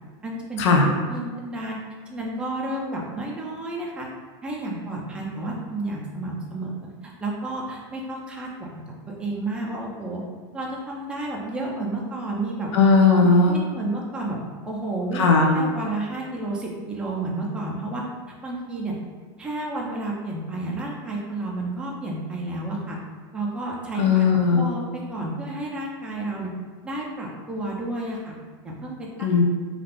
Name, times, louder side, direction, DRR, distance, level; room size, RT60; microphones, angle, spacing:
voice 1, 0.2-1.8 2.1-4.1 4.4-10.2 10.5-12.7 13.1-14.4 14.6-15.2 15.5-18.1 18.4-19.0 19.4-23.0 23.3-26.5 26.8-28.4 28.6-29.1, right 2 dB, 5° right, -3 dB, 0.4 m, -31 dB
voice 2, 12.7-13.6 15.1-15.6 23.9-24.7 29.2-29.4, left 4 dB, 70° left, 1 dB, 0.6 m, -17 dB
2.4 x 2.4 x 3.4 m, 1.5 s
supercardioid pair, 130°, 15 cm